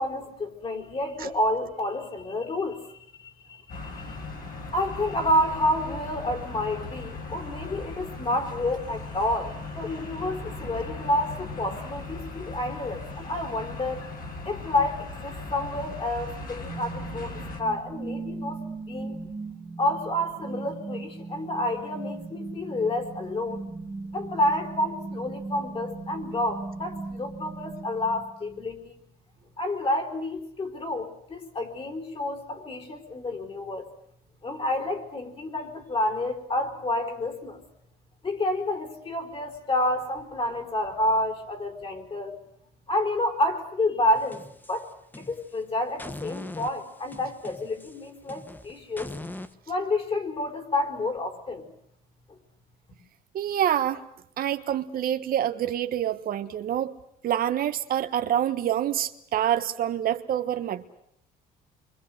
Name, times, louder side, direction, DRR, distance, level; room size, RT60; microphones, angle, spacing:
voice 1, 0.0-4.2 4.7-14.1 14.4-19.2 19.8-23.6 24.1-29.0 29.6-33.9 34.4-37.6 38.2-42.4 42.9-44.4 44.7-44.9 45.2-49.2 49.7-51.7 52.3-52.4, left 1 dB, 35° left, 4 dB, 4.7 m, -29 dB
sound 1, 3.7-17.6, left 3 dB, 55° left, 6.2 m, -38 dB
sound 2, 16.7-28.6, right 3 dB, 20° right, 2.5 m, -38 dB
sound 3, 44.1-45.6 46.0-49.5, left 2 dB, 10° left, 1.3 m, -41 dB
voice 2, 53.3-54.0 54.4-56.9 57.2-60.8, right 11 dB, 60° right, 9 dB, 1.3 m, -26 dB
27.0 x 24.0 x 7.9 m, 0.70 s
cardioid pair, 110°, 17 cm